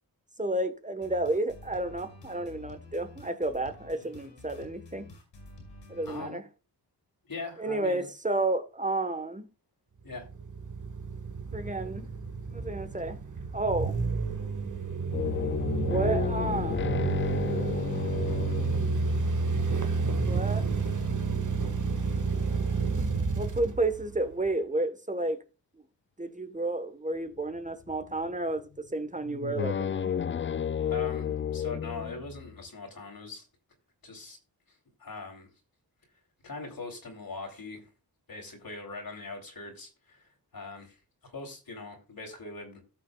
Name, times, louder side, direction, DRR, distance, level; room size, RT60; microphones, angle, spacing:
voice 1, 0.4-5.1 5.9-6.4 7.6-9.5 11.5-12.1 12.5-13.2 13.5-14.0 15.8-17.0 20.2-20.7 23.3-25.4 26.2-30.1, right 2 dB, 20° right, 1.2 m, -31 dB
sound 1, 1.0-6.3, left 2 dB, 90° left, 6.0 m, -49 dB
voice 2, 6.1-6.4 7.3-8.1 10.0-10.3 30.9-33.4 34.0-34.4 35.0-35.5 36.4-37.9 38.3-40.9 41.2-42.8, left 3 dB, 55° left, 3.3 m, -41 dB
sound 2, 10.1-24.5, right 4 dB, 45° right, 1.7 m, -30 dB
sound 3, 15.1-20.1 27.7-28.3 28.6-28.7 29.2-32.6, left 8 dB, 30° left, 0.4 m, -32 dB
18.0 x 6.0 x 2.3 m
cardioid pair, 75°, 41 cm